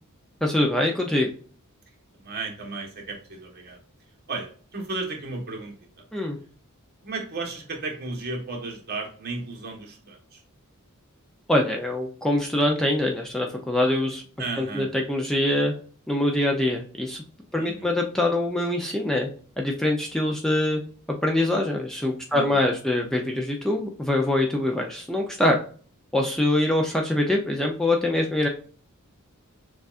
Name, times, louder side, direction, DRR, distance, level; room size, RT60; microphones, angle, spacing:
voice 1, 0.4-1.3 6.1-6.4 11.5-14.2 14.6-15.7 16.1-17.2 17.5-19.3 19.6-20.8 21.1-25.6 26.1-28.5, left 1 dB, ahead, 1 dB, 0.5 m, -24 dB
voice 2, 2.2-3.8 4.3-5.7 7.0-10.4 14.4-14.9 17.5-17.9 22.3-22.7, right 3 dB, 45° right, 1 dB, 1.2 m, -34 dB
6.7 x 2.4 x 2.4 m, 0.43 s
head